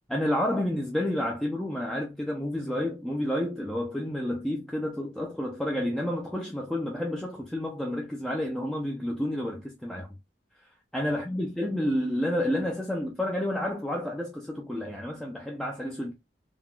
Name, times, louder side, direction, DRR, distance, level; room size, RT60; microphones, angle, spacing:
voice 1, 0.1-10.2 10.6-10.7 10.9-16.1, left 1 dB, 5° left, 0.5 m, -30 dB
3.6 x 2.4 x 2.3 m
head